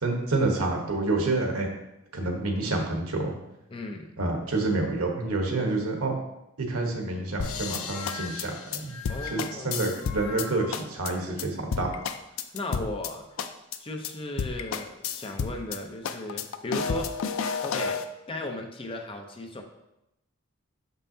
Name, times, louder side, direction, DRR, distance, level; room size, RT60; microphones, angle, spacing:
voice 1, 0.0-1.7 2.1-3.3 4.2-6.1 6.6-8.9 9.3-11.9, right 2 dB, 85° right, 2 dB, 1.2 m, -28 dB
voice 2, 3.7-4.2 9.1-9.8 12.5-13.3 13.8-17.3 17.6-19.6, left 2 dB, 25° left, 3 dB, 0.6 m, -36 dB
sound 1, 7.4-10.5 10.7-11.1 11.4-11.5 11.7-13.1 13.4-13.8 14.0-14.1 14.4-15.8 16.0-18.1, left 6 dB, 65° left, 0.4 m, -31 dB
sound 2, 7.8-10.9, left 5 dB, 85° left, 1.0 m, -41 dB
6.5 x 5.5 x 2.7 m, 0.88 s
head